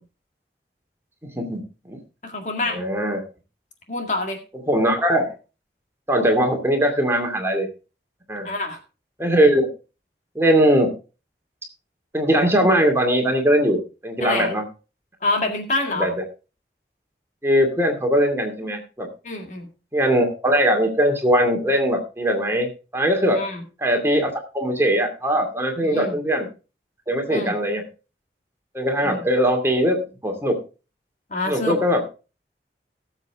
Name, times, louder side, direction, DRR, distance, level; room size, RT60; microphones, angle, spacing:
voice 1, 1.4-2.0 2.7-3.2 4.7-5.3 6.1-7.7 8.3-8.5 9.2-9.7 10.3-10.9 12.1-14.6 15.9-16.2 17.4-19.1 19.9-23.4 23.8-26.5 27.1-27.8 28.7-30.6 31.5-32.0, equal, 15° right, 2 dB, 2.4 m, -20 dB
voice 2, 2.2-2.8 3.9-4.4 8.4-8.8 14.2-14.5 15.2-16.1 19.2-19.7 23.3-23.6 25.8-26.2 27.3-27.5 29.0-29.2 31.3-31.7, left 2 dB, 45° left, 4 dB, 2.0 m, -26 dB
18.0 x 7.4 x 3.6 m, 0.33 s
head